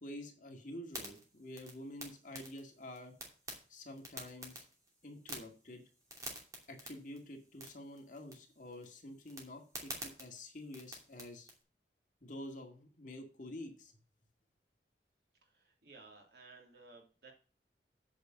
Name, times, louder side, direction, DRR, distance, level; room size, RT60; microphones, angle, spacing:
voice 1, 0.0-3.1 3.7-4.6 5.0-5.8 6.7-11.5 12.2-13.9, left 1 dB, 45° left, 3 dB, 2.0 m, -48 dB
sound 1, 0.8-11.6, right 1 dB, 20° right, 2.6 m, -50 dB
voice 2, 15.4-17.3, right 3 dB, 65° right, 0 dB, 3.1 m, -57 dB
8.6 x 5.3 x 7.6 m, 0.38 s
head